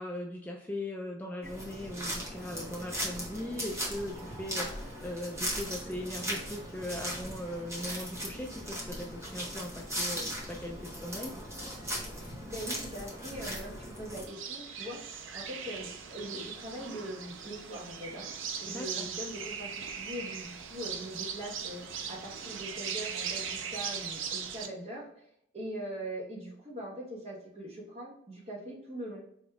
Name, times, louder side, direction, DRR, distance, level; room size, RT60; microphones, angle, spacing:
voice 1, 0.0-11.3 18.7-19.1, left 1 dB, 10° left, -1 dB, 0.3 m, -39 dB
sound 1, 1.4-14.3, equal, 15° right, 1.0 m, -38 dB
voice 2, 12.2-18.2 18.6-25.1 25.5-29.2, right 1 dB, 30° right, -3 dB, 1.2 m, -42 dB
sound 2, 14.3-24.7, right 7 dB, 70° right, 0.5 m, -39 dB
4.8 x 3.0 x 2.3 m, 0.75 s
head